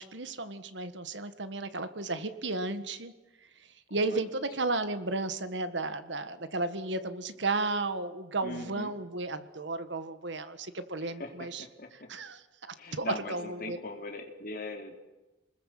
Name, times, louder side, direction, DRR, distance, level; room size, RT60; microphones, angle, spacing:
voice 1, 0.0-3.1 3.6-11.6 12.1-12.4 12.9-13.8, right 2 dB, 70° right, 11 dB, 1.6 m, -33 dB
voice 2, 8.4-8.9 11.0-12.1 12.8-15.0, left 2 dB, 50° left, 4 dB, 3.2 m, -40 dB
29.0 x 21.0 x 7.7 m, 1.1 s
head